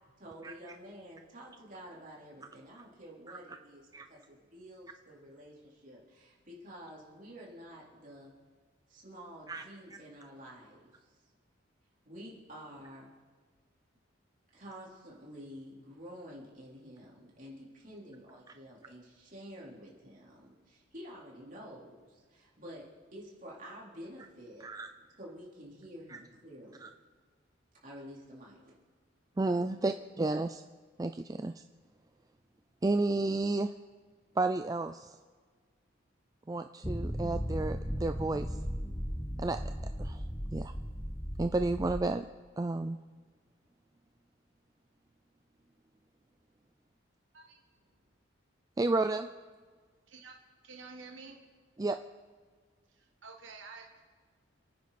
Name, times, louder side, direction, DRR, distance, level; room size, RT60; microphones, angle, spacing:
voice 1, 0.2-8.3 8.9-11.1 12.0-13.1 14.5-24.7 25.2-26.9 27.8-28.7 29.7-29.9, equal, 45° right, -5 dB, 3.9 m, -49 dB
voice 2, 29.4-30.6 31.0-31.6 32.8-33.7 34.4-35.2 36.5-38.6 39.4-39.6 40.0-40.2 40.5-40.7 41.4-42.3 42.6-43.0 48.8-49.3 51.8-52.0, right 2 dB, 20° right, 8 dB, 0.3 m, -31 dB
sound 1, 36.8-42.0, equal, 15° left, 0.8 m, -36 dB
voice 3, 50.1-50.4 50.6-51.4 52.9-54.0, right 4 dB, 75° right, 2 dB, 1.3 m, -50 dB
28.5 x 9.6 x 4.2 m, 1.5 s
head